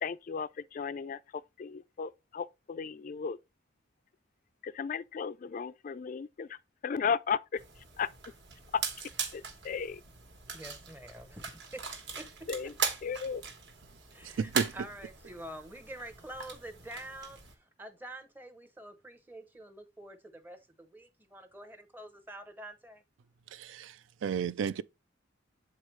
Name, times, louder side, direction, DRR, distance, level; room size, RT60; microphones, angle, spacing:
voice 1, 0.0-3.4 4.6-6.6 6.8-7.6 8.0-8.1 8.7-8.8 9.3-10.0 12.5-12.7 13.0-13.4, left 6 dB, 40° left, 0.3 m, -35 dB
sound 1, 7.6-17.5, right 5 dB, 60° right, 1.3 m, -40 dB
voice 2, 10.5-11.8 12.2-12.3 12.6-12.7 14.1-23.0, right 1 dB, 10° right, 0.7 m, -47 dB
voice 3, 14.4-14.7 23.6-23.9 24.2-24.8, right 6 dB, 75° right, 0.4 m, -31 dB
7.3 x 4.7 x 3.2 m
head